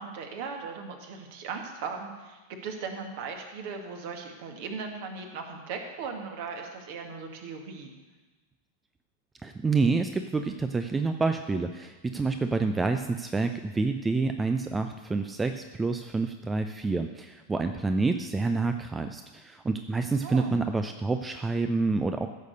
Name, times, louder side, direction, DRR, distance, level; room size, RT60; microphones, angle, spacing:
voice 1, 0.0-7.9 20.2-20.5, right 5 dB, 50° right, 3 dB, 1.9 m, -38 dB
voice 2, 9.4-22.3, right 3 dB, 10° right, 7 dB, 0.6 m, -28 dB
15.5 x 6.6 x 6.6 m, 1.2 s
figure-of-eight pair, 90°, 0 cm